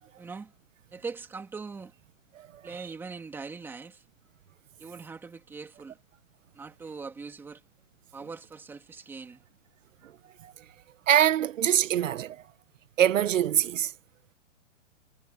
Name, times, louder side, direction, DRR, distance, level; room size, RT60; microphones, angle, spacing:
voice 1, 0.2-0.5 0.9-1.9 2.6-4.0 4.8-6.0 6.5-7.6 8.1-9.4, right 4 dB, 5° right, 2.4 m, -41 dB
voice 2, 2.3-2.9 10.0-10.1 10.4-10.5 11.1-12.4 13.0-13.9, right 11 dB, 90° right, 1.3 m, -24 dB
hypercardioid pair, 180°, 37 cm